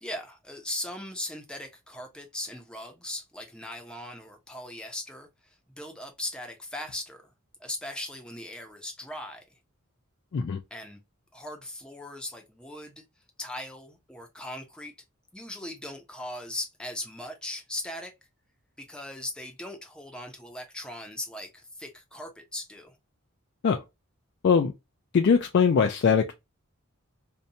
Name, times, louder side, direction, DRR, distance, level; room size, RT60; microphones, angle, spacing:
voice 1, 0.0-5.3 5.8-7.2 7.6-9.4 10.7-11.0 11.3-13.0 13.4-14.9 15.3-18.1 18.8-23.0, left 1 dB, 5° left, 0.5 m, -39 dB
voice 2, 25.1-26.3, left 6 dB, 55° left, 0.3 m, -21 dB
2.6 x 2.2 x 2.6 m
head